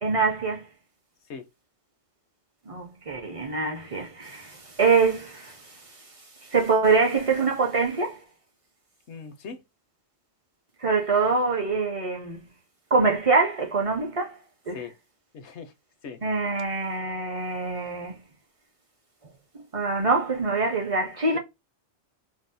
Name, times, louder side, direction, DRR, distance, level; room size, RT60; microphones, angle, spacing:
voice 1, 0.0-0.7 2.7-5.8 6.5-8.2 10.8-12.4 12.9-14.4 14.7-14.8 16.2-18.2 19.7-21.4, right 4 dB, 40° right, 0.5 m, -24 dB
voice 2, 9.1-9.6 14.7-14.9 15.3-15.7 16.0-16.2 21.3-21.4, left 5 dB, 70° left, 0.8 m, -39 dB
2.6 x 2.0 x 3.8 m
omnidirectional pair, 1.3 m